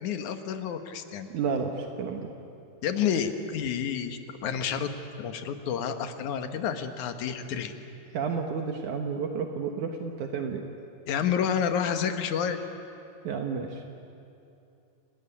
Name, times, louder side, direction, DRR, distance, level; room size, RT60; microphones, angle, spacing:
voice 1, 0.0-1.3 2.8-7.7 11.1-12.6, left 8 dB, 70° left, 7 dB, 2.6 m, -29 dB
voice 2, 1.3-2.3 8.1-10.6 13.2-13.8, right 5 dB, 70° right, 4 dB, 2.6 m, -31 dB
28.0 x 19.0 x 10.0 m, 2.7 s
omnidirectional pair, 3.8 m